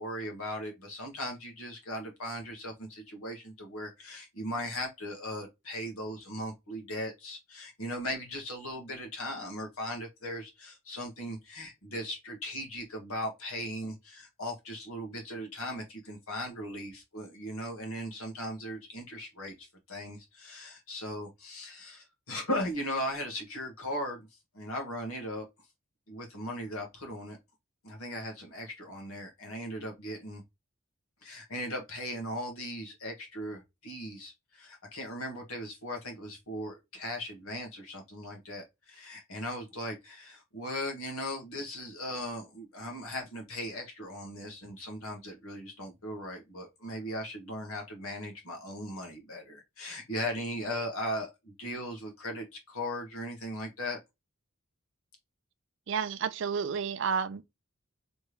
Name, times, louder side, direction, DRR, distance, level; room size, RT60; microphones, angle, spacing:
voice 1, 0.0-24.3 24.5-25.4 26.1-27.4 27.8-30.4 31.2-54.0, left 1 dB, 80° left, 1.5 m, -38 dB
voice 2, 55.9-57.4, right 6 dB, 55° right, 0.4 m, -31 dB
3.4 x 3.3 x 2.9 m
head